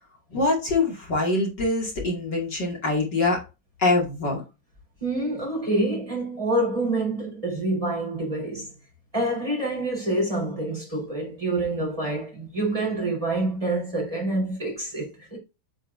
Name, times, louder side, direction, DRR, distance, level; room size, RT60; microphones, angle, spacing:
voice 1, 0.3-3.4 3.8-4.4, left 2 dB, 50° left, 3.0 m, -24 dB
voice 2, 5.0-8.7 9.1-15.4, right 2 dB, 15° right, 4.0 m, -27 dB
8.3 x 7.4 x 2.6 m
omnidirectional pair, 2.4 m